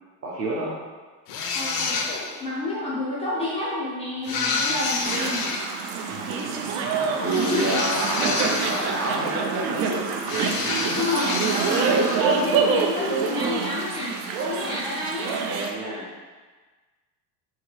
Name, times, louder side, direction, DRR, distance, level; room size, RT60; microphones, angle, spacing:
voice 1, 0.2-0.7 6.1-10.0 10.4-10.5 15.5-16.1, right 2 dB, 35° right, -5 dB, 0.8 m, -29 dB
sound 1, 1.3-2.4 4.2-5.6 7.2-9.3 10.3-12.3, left 4 dB, 85° left, 0.7 m, -28 dB
voice 2, 1.5-2.0 2.4-5.5 7.3-7.7 10.8-15.5, left 2 dB, 15° left, -8 dB, 0.3 m, -29 dB
sound 2, 5.1-15.7, right 5 dB, 65° right, 0.5 m, -26 dB
3.3 x 2.9 x 3.3 m, 1.3 s
cardioid pair, 170°, 42 cm